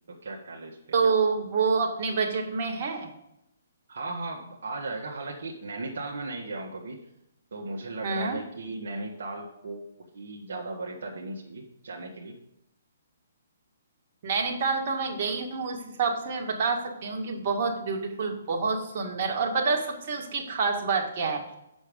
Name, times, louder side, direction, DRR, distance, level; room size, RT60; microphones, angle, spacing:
voice 1, 0.1-0.8 3.9-7.0 7.5-12.3, right 2 dB, 70° right, -1 dB, 1.5 m, -37 dB
voice 2, 0.9-3.1 8.0-8.4 14.2-21.4, right 4 dB, 45° right, 1 dB, 2.0 m, -27 dB
8.0 x 6.3 x 5.3 m, 0.84 s
hypercardioid pair, 140°, 0 cm